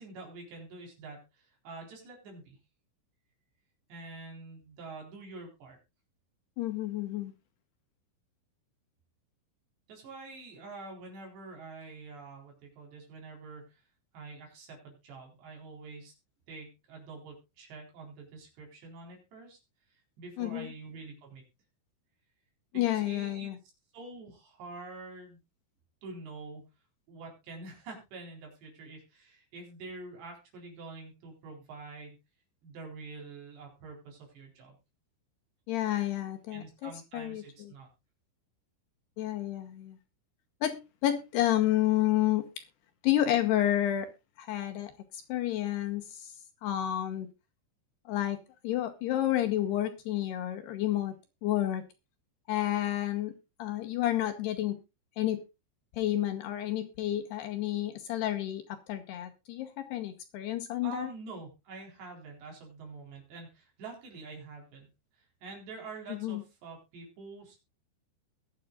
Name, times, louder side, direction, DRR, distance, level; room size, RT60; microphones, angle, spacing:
voice 1, 0.0-2.6 3.9-5.8 9.9-13.8 14.1-16.1 16.5-19.6 20.2-21.4 22.7-23.5 23.9-25.4 26.0-26.7 27.1-32.2 32.6-34.8 36.5-37.9 60.8-64.9 65.2-67.6, right 3 dB, 60° right, 6.0 m, -46 dB
voice 2, 6.6-7.3 20.4-20.7 22.7-23.6 35.7-37.7 39.2-40.0 40.6-42.6 43.0-44.1 44.4-44.9 45.3-46.3 46.6-47.3 48.1-48.4 48.6-51.1 51.4-51.8 52.5-54.8 55.2-55.4 55.9-61.1 66.1-66.4, left 13 dB, 75° left, 2.6 m, -30 dB
21.5 x 7.9 x 2.4 m
omnidirectional pair, 5.8 m